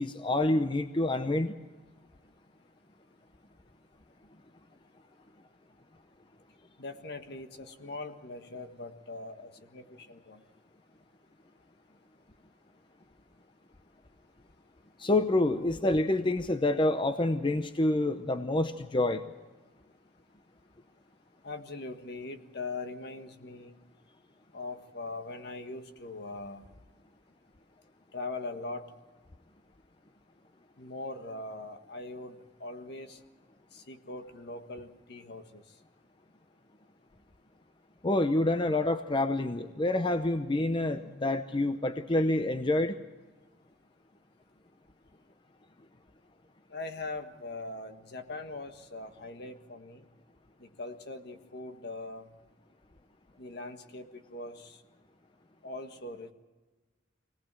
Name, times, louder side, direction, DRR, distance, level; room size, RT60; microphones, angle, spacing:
voice 1, 0.0-1.5 15.0-19.3 38.0-43.0, left 2 dB, 25° left, 9 dB, 0.7 m, -27 dB
voice 2, 6.8-10.4 21.4-23.7 24.5-26.7 28.1-28.9 30.8-33.2 33.7-35.6 46.7-50.0 50.6-52.3 53.4-54.8 55.6-56.3, left 2 dB, 60° left, 7 dB, 1.7 m, -41 dB
24.5 x 18.5 x 7.6 m, 1.2 s
head